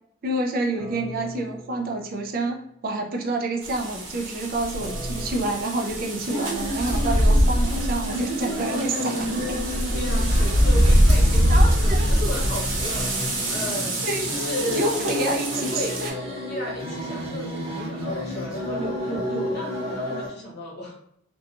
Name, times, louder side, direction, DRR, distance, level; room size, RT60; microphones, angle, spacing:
voice 1, 0.2-9.6 11.5-12.1 14.0-14.3 14.7-16.1, right 2 dB, 45° right, 3 dB, 0.4 m, -28 dB
sound 1, 0.8-2.8 4.8-6.6 8.8-10.6 12.8-15.0, right 1 dB, 20° left, 1.0 m, -42 dB
sound 2, 3.6-16.1, equal, 85° right, 0.9 m, -23 dB
sound 3, 6.3-20.3, equal, 30° right, 0.9 m, -31 dB
voice 2, 9.9-14.8 15.1-16.0 16.5-21.0, equal, 55° left, -3 dB, 0.9 m, -34 dB
2.8 x 2.2 x 2.4 m, 0.74 s
head